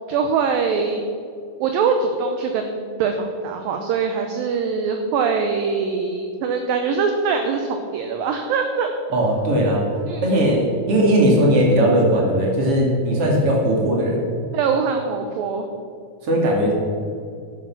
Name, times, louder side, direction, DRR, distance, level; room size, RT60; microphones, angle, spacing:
voice 1, 0.1-1.0 1.6-8.9 10.1-10.2 14.5-15.7, right 5 dB, 75° right, 5 dB, 2.2 m, -23 dB
voice 2, 9.1-9.9 10.2-14.3 16.2-16.7, right 1 dB, 40° right, -1 dB, 2.9 m, -18 dB
12.0 x 9.8 x 6.0 m, 2.4 s
omnidirectional pair, 4.8 m